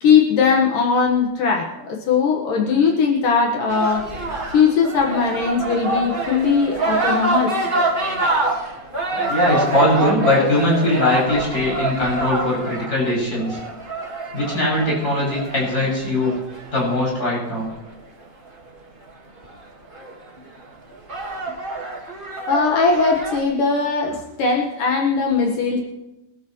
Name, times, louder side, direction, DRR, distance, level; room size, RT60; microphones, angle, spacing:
voice 1, 0.0-4.1 4.5-7.6 22.5-25.8, left 5 dB, 65° left, 0 dB, 2.9 m, -19 dB
sound 1, 3.7-17.9 19.4-19.5 19.9-20.4 20.9-23.4, right 2 dB, 70° right, 0.5 m, -26 dB
voice 2, 9.3-13.6 14.3-16.3 16.7-17.7, left 1 dB, 25° left, -5 dB, 7.1 m, -20 dB
24.5 x 13.5 x 3.1 m, 0.93 s
omnidirectional pair, 4.3 m